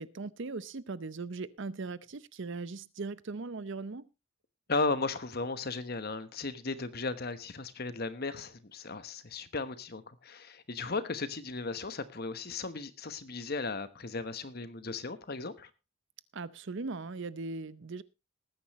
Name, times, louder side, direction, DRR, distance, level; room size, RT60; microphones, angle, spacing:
voice 1, 0.0-4.1 16.3-18.0, right 3 dB, 55° right, 0.6 m, -39 dB
voice 2, 4.7-15.7, left 3 dB, 45° left, 1.1 m, -36 dB
19.5 x 9.5 x 3.1 m
head